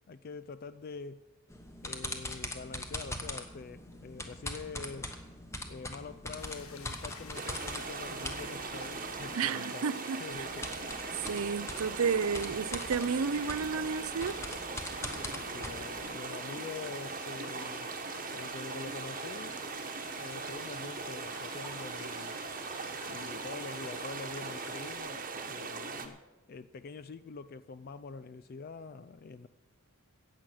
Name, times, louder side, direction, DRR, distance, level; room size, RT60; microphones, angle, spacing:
voice 1, 0.1-1.2 1.8-5.1 5.7-9.9 10.2-10.7 15.0-17.9 18.3-19.6 20.1-22.4 23.1-26.2 26.5-29.5, left 4 dB, 45° left, 0.3 m, -45 dB
sound 1, 1.5-9.4 10.3-16.2, left 1 dB, 15° left, 1.0 m, -42 dB
sound 2, 6.4-25.0, left 4 dB, 75° left, 1.6 m, -50 dB
sound 3, 7.3-26.1, right 4 dB, 40° right, 1.1 m, -40 dB
voice 2, 9.3-10.5 11.3-14.4, right 5 dB, 75° right, 0.5 m, -32 dB
15.0 x 8.8 x 6.4 m
head